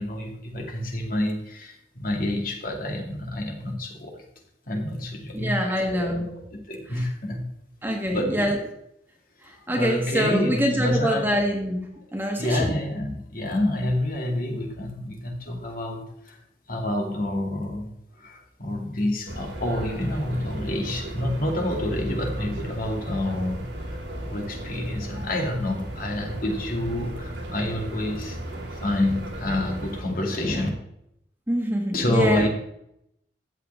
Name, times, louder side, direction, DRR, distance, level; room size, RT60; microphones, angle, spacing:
voice 1, 0.0-4.2 4.7-5.5 5.9-6.3 6.7-7.4 8.1-8.5 9.7-11.2 12.4-16.4 16.7-17.9 18.2-28.4 28.7-30.7 31.9-32.5, left 1 dB, 50° left, 1 dB, 2.4 m, -28 dB
voice 2, 5.3-6.3 6.9-7.1 7.8-8.6 9.4-11.9 12.1-12.8 31.5-32.5, equal, 10° right, 1 dB, 1.8 m, -25 dB
sound 1, 19.2-30.0, right 1 dB, 85° right, 2.7 m, -35 dB
13.5 x 8.3 x 3.5 m, 0.78 s
head